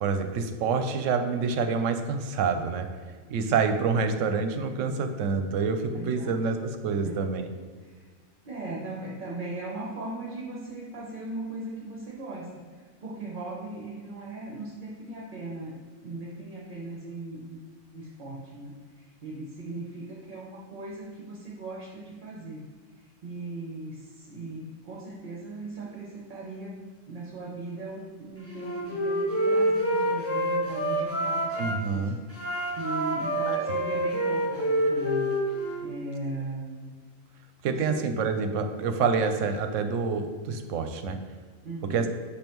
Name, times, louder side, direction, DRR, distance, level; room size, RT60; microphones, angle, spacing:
voice 1, 0.0-2.9 3.3-6.6 6.8-7.4 31.6-32.2 33.5-33.7 37.6-41.2 41.9-42.1, right 5 dB, 75° right, 7 dB, 0.9 m, -27 dB
voice 2, 5.9-6.4 6.9-7.3 7.8-8.1 8.5-17.6 17.9-22.6 23.0-26.8 27.1-32.1 32.5-37.0 37.7-38.0 41.6-42.0, right 2 dB, 45° right, -3 dB, 0.9 m, -38 dB
Wind instrument woodwind instrument, 28.4-31.7 32.3-35.9, right 1 dB, 10° left, 1.1 m, -27 dB
6.7 x 5.3 x 3.0 m, 1.5 s
omnidirectional pair, 1.3 m